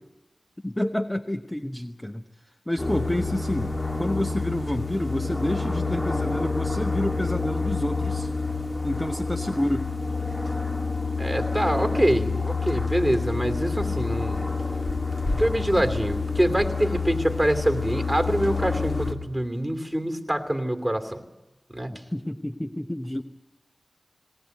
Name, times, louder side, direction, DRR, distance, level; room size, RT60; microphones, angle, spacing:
voice 1, 0.6-2.2 2.7-8.3 8.8-9.9 21.9-23.2, left 1 dB, 15° left, 7 dB, 0.9 m, -29 dB
sound 1, 2.8-19.1, left 4 dB, 35° left, 2.2 m, -28 dB
voice 2, 11.2-14.5 15.4-21.2 21.7-21.9, right 1 dB, 5° right, 6 dB, 2.8 m, -25 dB
21.0 x 18.0 x 9.2 m, 0.98 s
wide cardioid pair, 50°, 0 cm